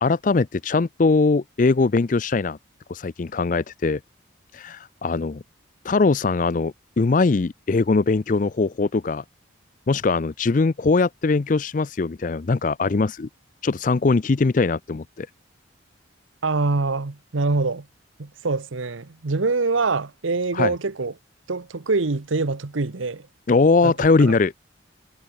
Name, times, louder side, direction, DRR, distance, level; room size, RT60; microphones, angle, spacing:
voice 1, 0.0-2.6 2.9-4.0 4.5-5.4 5.8-9.2 9.9-13.3 13.6-15.3 20.5-20.7 23.5-24.5, left 3 dB, 40° left, 0.4 m, -21 dB
voice 2, 16.4-17.9 18.2-21.1 21.5-23.3 23.8-24.4, right 3 dB, 85° right, 1.0 m, -25 dB
head